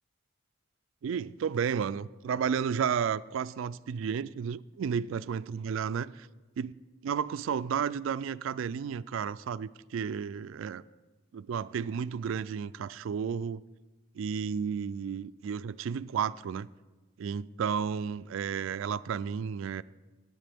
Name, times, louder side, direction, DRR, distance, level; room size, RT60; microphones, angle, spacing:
voice 1, 1.0-6.3 6.6-6.7 7.0-10.8 11.3-13.6 14.1-16.7 17.2-19.8, right 7 dB, 65° right, 0.3 m, -32 dB
15.0 x 10.0 x 3.5 m
head